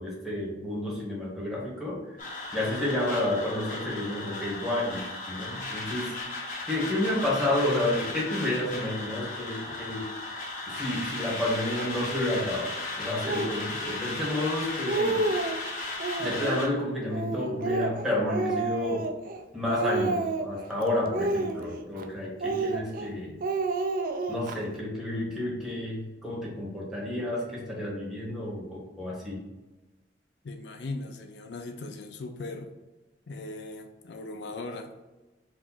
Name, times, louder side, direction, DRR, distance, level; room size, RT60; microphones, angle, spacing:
voice 1, 0.0-2.0 2.5-10.1 10.7-15.2 16.2-19.1 19.5-23.3 24.3-29.4, left 1 dB, ahead, -6 dB, 1.4 m, -30 dB
sound 1, 2.2-16.7, left 2 dB, 50° left, 1.1 m, -36 dB
Speech, 13.2-13.6 14.3-14.4 14.7-15.6 16.0-16.6 17.1-19.4 19.7-20.6 21.1-22.0 22.4-23.1 23.4-24.6, right 2 dB, 50° right, 0.4 m, -30 dB
voice 2, 30.4-32.7 33.3-34.9, left 2 dB, 70° left, 5 dB, 0.4 m, -38 dB
4.7 x 2.5 x 4.2 m, 1.1 s
head